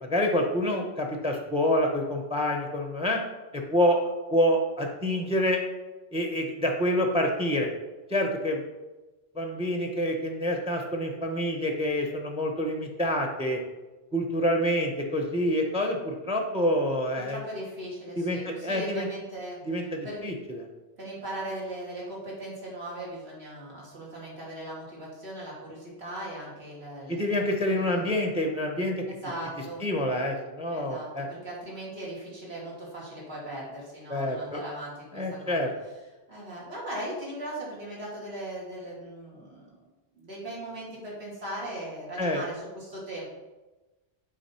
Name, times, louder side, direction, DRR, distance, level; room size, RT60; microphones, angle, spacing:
voice 1, 0.0-3.2 3.5-4.0 4.3-5.6 6.1-7.7 8.1-8.6 9.3-13.6 14.1-17.4 18.2-19.1 19.7-20.7 27.1-29.0 29.8-31.3 34.1-34.6 35.1-35.7 42.2-42.4, left 1 dB, 5° right, 3 dB, 0.8 m, -27 dB
voice 2, 17.3-20.2 21.0-27.2 27.7-28.1 29.1-29.8 30.7-35.6 36.3-39.7 40.1-43.3, right 1 dB, 70° right, -5 dB, 2.8 m, -38 dB
8.3 x 5.5 x 4.4 m, 1.1 s
omnidirectional pair, 1.1 m